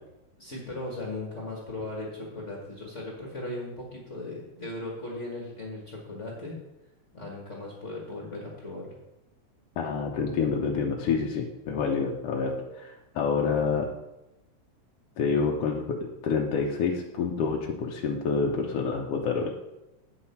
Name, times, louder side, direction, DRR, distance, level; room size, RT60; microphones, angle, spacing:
voice 1, 0.4-6.6 7.1-8.9, left 2 dB, 40° left, -2 dB, 1.0 m, -37 dB
voice 2, 9.8-13.9 15.2-16.0 16.2-19.5, left 5 dB, 70° left, 0 dB, 1.4 m, -27 dB
8.7 x 7.6 x 4.4 m, 0.96 s
omnidirectional pair, 3.7 m